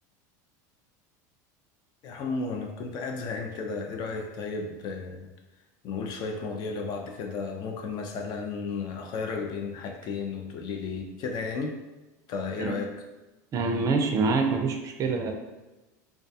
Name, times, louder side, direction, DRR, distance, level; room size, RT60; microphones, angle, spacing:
voice 1, 2.0-5.3 5.8-11.8 12.3-12.9, left 4 dB, 45° left, 3 dB, 0.4 m, -33 dB
voice 2, 13.5-15.3, right 4 dB, 35° right, 4 dB, 0.4 m, -26 dB
2.3 x 2.2 x 2.6 m, 1.1 s
supercardioid pair, 115°, 9 cm